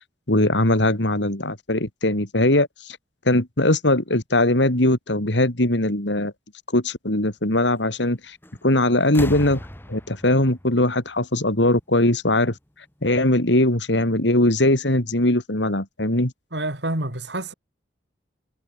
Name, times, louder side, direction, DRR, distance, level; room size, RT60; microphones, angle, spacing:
voice 1, 0.3-3.0 3.3-6.3 6.7-8.4 8.6-9.6 9.9-12.5 13.0-16.3, left 1 dB, 90° left, 3.8 m, -20 dB
sound 1, 8.4-8.7 9.0-11.8 12.9-13.0, equal, 10° left, 5.8 m, -37 dB
voice 2, 16.5-17.5, right 1 dB, 75° right, 5.7 m, -28 dB
head